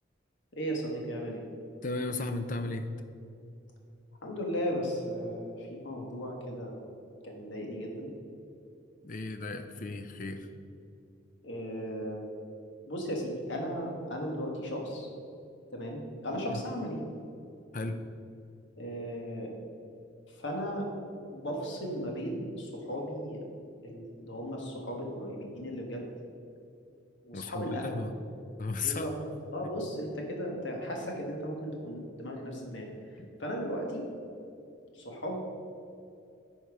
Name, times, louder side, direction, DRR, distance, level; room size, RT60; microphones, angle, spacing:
voice 1, 0.5-1.4 4.2-6.9 7.2-8.1 11.4-12.3 12.8-15.1 15.7-17.0 18.8-19.5 20.3-20.9 21.3-23.4 23.8-26.1 27.2-28.0 28.8-29.1 29.5-34.0 34.9-35.5, equal, 65° left, 0 dB, 1.5 m, -36 dB
voice 2, 1.8-2.9 9.0-10.5 16.5-16.6 17.7-18.0 27.3-28.1 28.6-29.1 33.2-33.3, left 3 dB, 40° left, 8 dB, 0.5 m, -35 dB
10.0 x 4.4 x 4.7 m, 2.6 s
head